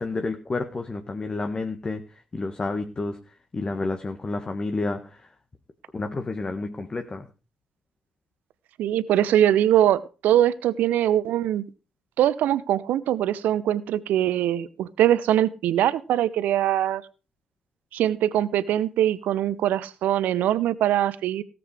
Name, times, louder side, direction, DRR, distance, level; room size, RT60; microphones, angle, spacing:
voice 1, 0.0-2.0 2.3-3.2 3.5-5.0 5.9-7.2, left 3 dB, 30° left, 6 dB, 1.6 m, -29 dB
voice 2, 8.8-11.7 12.2-17.0 17.9-21.4, right 11 dB, 60° right, 18 dB, 0.8 m, -22 dB
17.5 x 7.8 x 4.8 m, 0.33 s
figure-of-eight pair, 45°, 3 cm